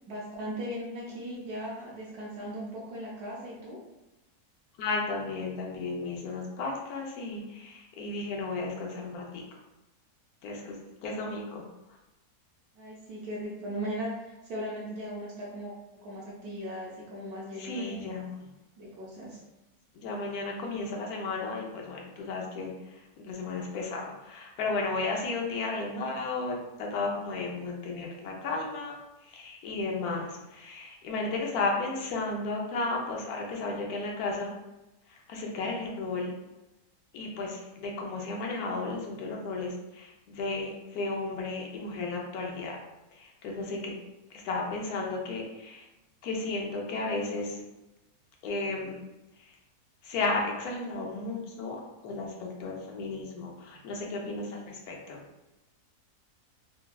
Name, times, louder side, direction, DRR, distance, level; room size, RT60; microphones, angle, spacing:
voice 1, 0.1-3.8 12.7-18.1 18.8-19.4, equal, 80° right, -5 dB, 1.1 m, -38 dB
voice 2, 4.8-9.4 10.4-11.6 17.6-18.4 20.0-28.9 29.2-34.5 35.1-36.3 37.1-42.8 43.1-43.9 44.3-45.8 46.2-47.6 48.4-49.0 50.0-55.2, left 3 dB, 75° left, -1 dB, 1.1 m, -34 dB
3.3 x 2.1 x 2.2 m, 0.99 s
omnidirectional pair, 1.6 m